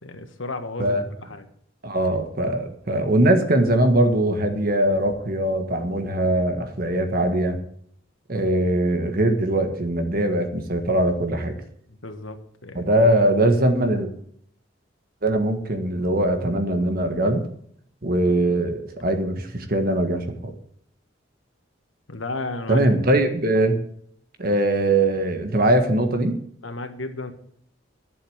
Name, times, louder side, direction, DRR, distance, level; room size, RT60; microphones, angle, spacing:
voice 1, 0.0-1.5 11.9-12.8 22.1-22.9 26.6-27.3, left 2 dB, 85° left, 7 dB, 1.6 m, -33 dB
voice 2, 1.8-7.6 8.3-11.6 12.7-14.1 15.2-17.5 18.0-20.5 22.7-23.8 24.4-26.4, right 1 dB, 50° right, 6 dB, 1.6 m, -21 dB
11.5 x 7.2 x 8.8 m, 0.66 s
head